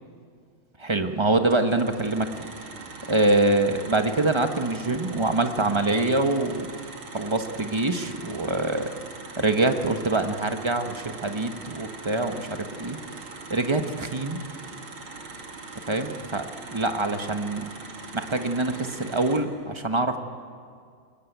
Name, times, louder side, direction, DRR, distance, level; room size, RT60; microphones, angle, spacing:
voice 1, 0.8-2.5 3.1-6.8 7.1-8.9 9.4-13.0 13.5-14.4 15.9-16.4 16.7-17.7 18.1-20.2, right 2 dB, 20° right, 6 dB, 0.7 m, -25 dB
sound 1, 1.5-19.4, right 3 dB, 80° right, 3.1 m, -41 dB
21.5 x 20.0 x 9.3 m, 2.1 s
omnidirectional pair, 2.3 m